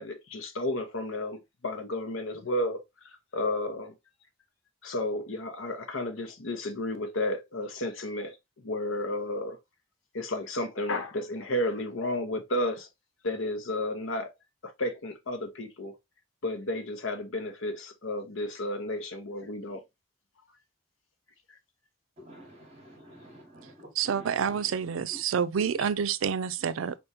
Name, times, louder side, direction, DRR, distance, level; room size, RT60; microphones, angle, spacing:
voice 1, 0.0-2.8 3.3-3.9 4.8-8.4 8.6-9.6 10.1-12.9 13.2-14.3 14.6-15.9 16.4-19.8, left 1 dB, 75° left, 1.0 m, -32 dB
voice 2, 22.2-24.7 25.6-25.7, right 1 dB, 35° right, 1.6 m, -49 dB
voice 3, 24.0-26.9, right 7 dB, 85° right, 0.4 m, -28 dB
4.4 x 3.5 x 2.7 m
head